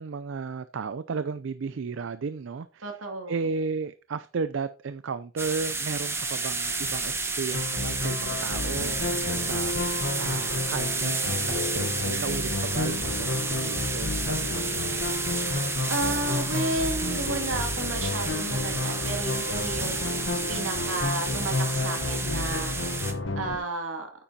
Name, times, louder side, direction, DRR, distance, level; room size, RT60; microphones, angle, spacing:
voice 1, 0.0-3.0 3.3-14.9, right 5 dB, 65° right, 0.4 m, -34 dB
voice 2, 2.8-3.4 15.9-20.0 20.5-22.8 23.3-24.1, right 2 dB, 85° right, 2.4 m, -32 dB
sound 1, 5.4-23.1, right 3 dB, 10° right, 0.9 m, -31 dB
Bowed string instrument, 5.7-9.1, equal, 40° right, 1.8 m, -52 dB
sound 2, 7.5-23.6, left 2 dB, 60° left, 1.0 m, -31 dB
9.0 x 9.0 x 2.8 m
head